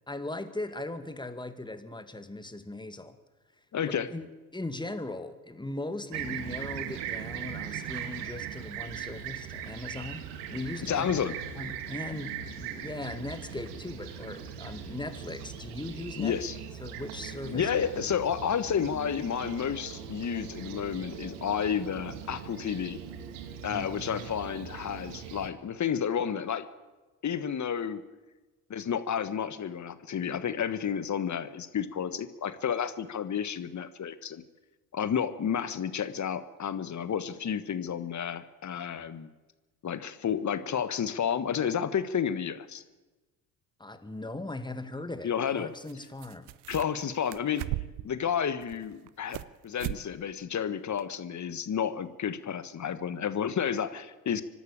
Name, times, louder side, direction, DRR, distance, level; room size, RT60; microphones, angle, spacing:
voice 1, 0.1-3.2 4.1-4.3 4.5-11.2 11.6-16.4 16.8-17.7 23.7-23.9 43.8-46.5, left 2 dB, 10° left, 10 dB, 2.0 m, -39 dB
voice 2, 3.7-4.1 10.9-11.3 16.2-16.5 17.4-23.0 23.6-26.7 27.2-28.0 28.7-34.4 34.9-39.3 39.8-42.8 45.2-45.7 46.7-47.6 48.0-54.4, left 8 dB, 40° left, 13 dB, 1.4 m, -31 dB
Fixed-wing aircraft airplane, 6.1-25.5, right 8 dB, 80° right, 1.9 m, -40 dB
sound 1, 44.2-44.3 45.9-46.0 46.2-47.0 47.3-48.1 48.6-49.5 49.8-50.0 50.4-50.5 51.0-51.1, right 17 dB, 60° right, 0.8 m, -37 dB
24.5 x 12.0 x 8.8 m, 1.2 s
hypercardioid pair, 60°, 45 cm